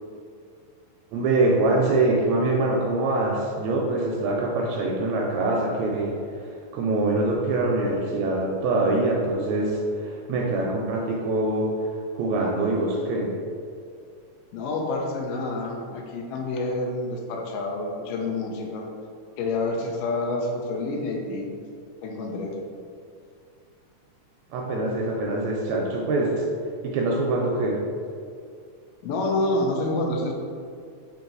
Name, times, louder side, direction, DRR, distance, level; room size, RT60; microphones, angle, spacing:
voice 1, 1.1-6.5 6.7-11.7 12.1-13.3 24.5-26.5 26.8-27.8, right 2 dB, 80° right, -1 dB, 1.6 m, -24 dB
voice 2, 14.5-18.9 19.4-21.6 22.0-22.6 29.0-30.3, left 2 dB, 75° left, 0 dB, 1.4 m, -28 dB
4.6 x 2.8 x 3.8 m, 2.3 s
omnidirectional pair, 3.3 m